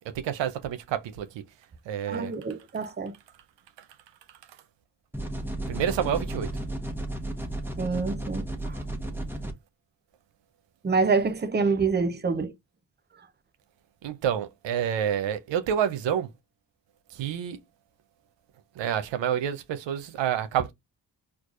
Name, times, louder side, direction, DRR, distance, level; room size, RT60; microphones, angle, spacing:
voice 1, 0.1-1.4 1.9-2.3 5.7-6.5 14.0-16.3 17.1-17.6 18.8-20.7, right 9 dB, 85° right, 0.6 m, -28 dB
voice 2, 2.1-3.1 7.8-8.8 10.8-12.5, right 4 dB, 25° right, 0.6 m, -26 dB
sound 1, 5.1-9.5, right 1 dB, 5° right, 1.1 m, -33 dB
4.5 x 2.4 x 2.5 m
supercardioid pair, 50°, 43 cm